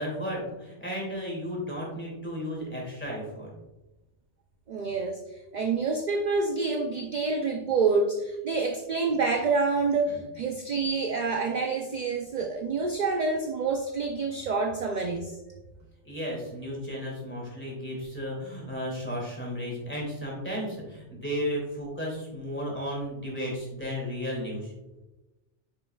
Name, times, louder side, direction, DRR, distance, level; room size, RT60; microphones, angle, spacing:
voice 1, 0.0-3.5 10.1-10.3 16.0-24.7, equal, 10° left, -4 dB, 2.4 m, -34 dB
voice 2, 4.7-5.2 5.5-15.6, right 4 dB, 50° right, 3 dB, 0.6 m, -27 dB
9.1 x 5.5 x 2.3 m, 1.0 s
omnidirectional pair, 1.2 m